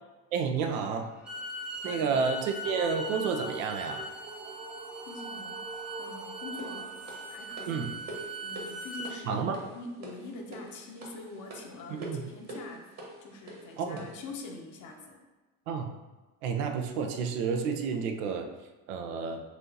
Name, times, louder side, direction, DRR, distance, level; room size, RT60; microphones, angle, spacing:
voice 1, 0.3-1.1 1.8-4.1 7.7-7.9 9.3-9.6 11.9-12.3 13.8-14.1 15.7-16.0 16.4-18.5 18.9-19.4, right 5 dB, 60° right, 5 dB, 0.6 m, -30 dB
Bowed string instrument, 1.1-9.1, right 1 dB, ahead, 0.8 m, -40 dB
voice 2, 1.8-2.2 5.0-5.7 6.0-7.0 7.3-7.9 8.4-12.9 13.2-15.2, left 2 dB, 40° left, 2 dB, 0.9 m, -44 dB
sound 1, 1.8-7.9, right 3 dB, 20° right, 0.3 m, -45 dB
sound 2, 6.6-14.3, right 1 dB, 35° right, 1.3 m, -45 dB
6.1 x 2.8 x 2.7 m, 1.2 s
figure-of-eight pair, 60°, 45 cm